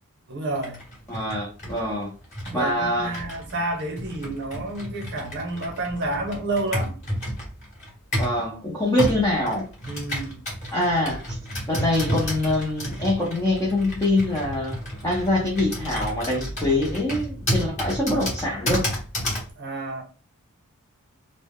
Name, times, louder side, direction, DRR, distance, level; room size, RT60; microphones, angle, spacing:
voice 1, 0.3-0.8 2.4-6.9 9.9-10.4 19.6-20.0, right 2 dB, 50° right, 0.7 m, -30 dB
Computer keyboard, 0.5-8.4 9.0-19.5, equal, 30° left, 1.0 m, -31 dB
voice 2, 1.1-2.1 2.5-3.2 8.2-9.7 10.7-11.4 11.7-18.9, left 1 dB, 15° left, 0.5 m, -24 dB
2.1 x 2.0 x 3.4 m
head